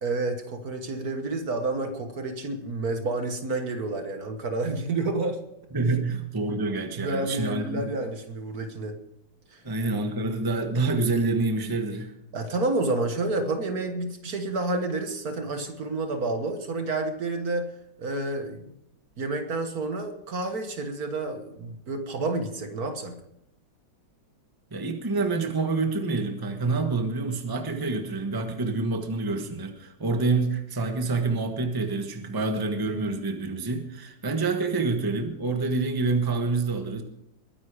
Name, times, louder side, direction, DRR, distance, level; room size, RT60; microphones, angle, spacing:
voice 1, 0.0-5.4 7.0-9.0 9.5-9.6 12.3-17.7 18.0-18.6 19.2-23.1, right 2 dB, 55° right, 7 dB, 1.7 m, -29 dB
voice 2, 5.7-7.9 9.6-12.1 24.7-37.0, right 3 dB, 15° right, 5 dB, 1.2 m, -27 dB
21.5 x 9.8 x 4.9 m, 0.81 s
omnidirectional pair, 2.0 m